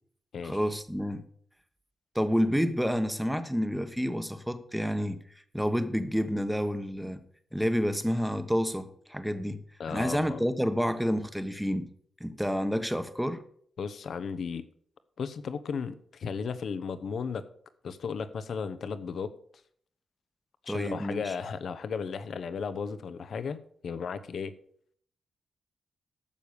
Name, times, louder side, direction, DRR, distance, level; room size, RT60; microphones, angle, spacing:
voice 1, 0.4-1.2 2.1-5.2 5.5-7.2 7.5-9.6 9.9-11.9 12.2-13.4 20.7-21.3, equal, ahead, 10 dB, 1.2 m, -29 dB
voice 2, 9.8-10.4 13.8-14.7 15.2-17.4 17.8-19.3 20.6-24.5, left 6 dB, 70° left, 13 dB, 0.9 m, -35 dB
11.0 x 7.0 x 6.7 m, 0.62 s
cardioid pair, 90°, 0 cm